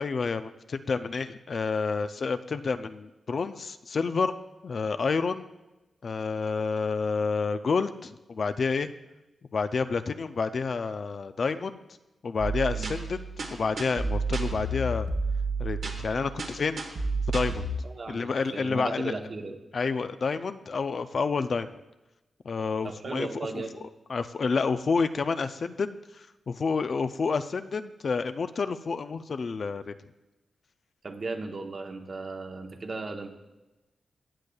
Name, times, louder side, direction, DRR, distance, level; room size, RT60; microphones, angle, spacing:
voice 1, 0.0-4.3 4.6-5.5 6.0-8.9 9.5-11.8 12.2-15.1 15.6-16.8 17.3-17.7 18.1-19.1 19.7-21.7 22.4-23.3 23.5-23.6 24.1-30.0, left 4 dB, 60° left, 10 dB, 0.4 m, -29 dB
sound 1, 12.4-17.7, right 3 dB, 75° right, 1.4 m, -31 dB
voice 2, 17.8-19.6 22.8-23.8 31.0-33.3, right 3 dB, 50° right, 4 dB, 1.0 m, -36 dB
15.0 x 8.1 x 2.3 m, 1.0 s
cardioid pair, 70°, 0 cm